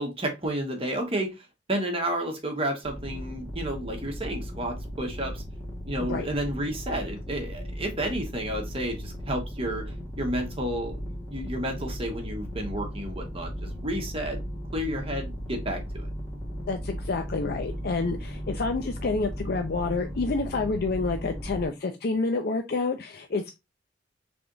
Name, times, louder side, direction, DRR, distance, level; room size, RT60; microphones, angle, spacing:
voice 1, 0.0-5.4 5.8-14.4 14.7-16.1, right 1 dB, 30° right, 2 dB, 1.1 m, -31 dB
sound 1, 2.8-21.7, equal, 15° left, 1.6 m, -36 dB
voice 2, 16.7-23.5, left 3 dB, 55° left, 5 dB, 0.5 m, -28 dB
3.5 x 3.4 x 3.8 m, 0.23 s
head